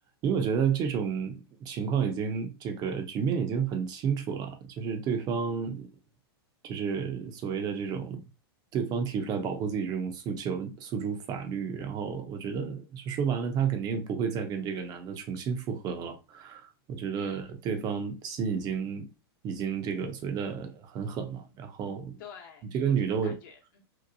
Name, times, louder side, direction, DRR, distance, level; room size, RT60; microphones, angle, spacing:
voice 1, 0.2-5.9 6.6-8.2 8.7-19.1 19.4-22.1 22.7-23.4, right 6 dB, 30° right, 0.6 m, -31 dB
voice 2, 17.1-17.5 22.2-23.8, left 7 dB, 55° left, 0.9 m, -49 dB
2.7 x 2.1 x 2.6 m
hypercardioid pair, 125°, 13 cm